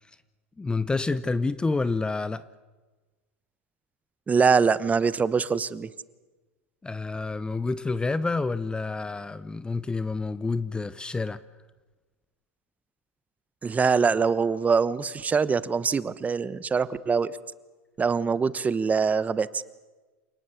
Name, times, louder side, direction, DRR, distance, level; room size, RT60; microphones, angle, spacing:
voice 1, 0.6-2.4 6.8-11.4, left 3 dB, 10° left, 0.7 m, -28 dB
voice 2, 4.3-5.9 13.6-17.3 18.0-19.6, right 5 dB, 20° right, 1.0 m, -23 dB
28.0 x 18.5 x 8.4 m
hypercardioid pair, 105°, 7 cm